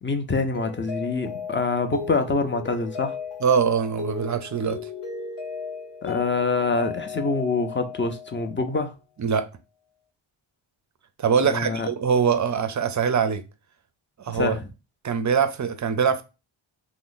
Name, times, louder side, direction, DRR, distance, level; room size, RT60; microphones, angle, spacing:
voice 1, 0.0-3.2 6.0-8.9 11.4-11.9 14.3-14.7, left 3 dB, 25° left, 0.4 m, -25 dB
Mallet percussion, 0.5-8.7, left 6 dB, 90° left, 0.9 m, -36 dB
voice 2, 3.4-4.8 9.2-9.4 11.2-13.4 14.2-14.5 15.0-16.2, right 6 dB, 40° right, 0.4 m, -23 dB
2.9 x 2.1 x 3.8 m
wide cardioid pair, 85°, 49 cm